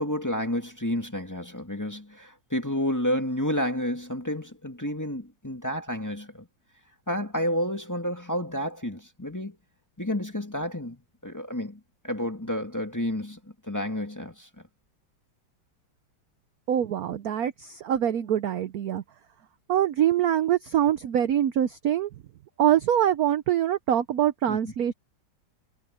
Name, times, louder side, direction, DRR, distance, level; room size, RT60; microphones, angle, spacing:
voice 1, 0.0-6.5 7.1-9.6 10.0-14.5 24.5-24.6, left 1 dB, 10° left, 1.8 m, -30 dB
voice 2, 16.7-19.0 19.7-22.1 22.6-24.9, right 10 dB, 65° right, 1.0 m, -24 dB
omnidirectional pair, 2.2 m